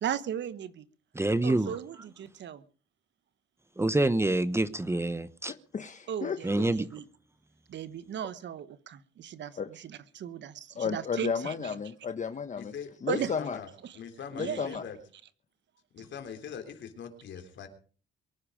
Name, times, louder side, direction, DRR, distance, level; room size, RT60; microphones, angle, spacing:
voice 1, 0.0-0.9 1.4-2.6 6.1-7.0 7.7-11.8 13.1-13.4 14.4-14.8, right 9 dB, 65° right, 1.2 m, -37 dB
voice 2, 1.1-1.7 3.8-5.5 6.4-6.8, right 2 dB, 15° right, 0.9 m, -26 dB
voice 3, 5.5-6.6 9.6-9.7 10.8-12.7 13.0-13.6 14.3-14.8, left 6 dB, 40° left, 1.0 m, -33 dB
voice 4, 12.5-13.7 13.9-15.0 15.9-17.7, left 7 dB, 70° left, 3.5 m, -42 dB
23.0 x 10.0 x 5.1 m
cardioid pair, 90°, 20 cm